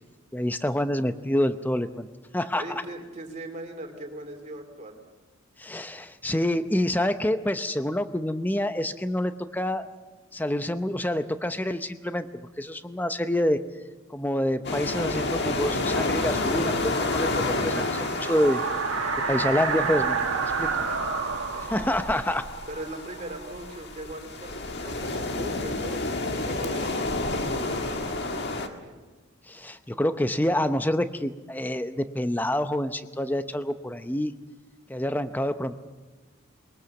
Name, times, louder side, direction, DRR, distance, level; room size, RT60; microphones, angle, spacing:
voice 1, 0.3-2.1 2.3-2.6 5.6-9.9 10.3-12.3 12.6-13.6 14.1-17.3 17.6-18.6 19.3-20.9 21.7-22.4 29.5-34.3 34.9-35.8, left 1 dB, 10° left, 10 dB, 0.7 m, -27 dB
voice 2, 2.5-4.9 20.9-21.0 21.5-22.0 22.7-28.9, right 1 dB, 35° right, 4 dB, 2.9 m, -40 dB
sound 1, 14.6-28.7, left 2 dB, 50° left, 1.7 m, -30 dB
sound 2, 15.3-24.0, right 4 dB, 75° right, 2.0 m, -31 dB
22.0 x 21.5 x 7.1 m, 1.3 s
head